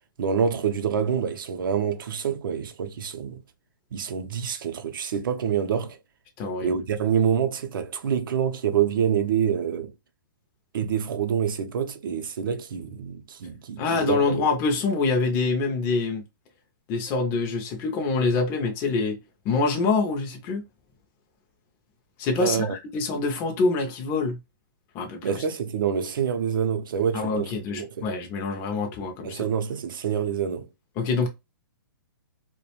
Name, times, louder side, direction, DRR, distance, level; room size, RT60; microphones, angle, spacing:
voice 1, 0.2-3.4 3.9-6.0 6.6-9.9 10.7-14.5 22.4-22.8 25.2-27.5 27.8-28.1 29.2-30.7, right 7 dB, 65° right, 0.5 m, -26 dB
voice 2, 6.4-6.8 13.8-16.2 16.9-19.2 19.4-20.6 22.2-24.4 24.9-25.2 27.1-29.4 31.0-31.3, left 3 dB, 20° left, 0.4 m, -25 dB
2.3 x 2.1 x 2.8 m
hypercardioid pair, 160°, 12 cm